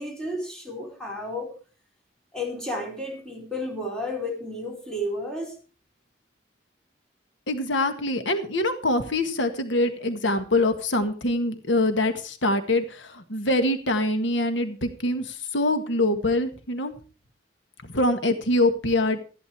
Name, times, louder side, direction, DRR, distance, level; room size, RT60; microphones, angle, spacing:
voice 1, 0.0-1.6 2.3-5.6, left 1 dB, 5° left, 4.3 m, -32 dB
voice 2, 7.5-16.9 17.9-19.2, left 1 dB, 85° left, 1.7 m, -24 dB
13.5 x 11.5 x 4.7 m
head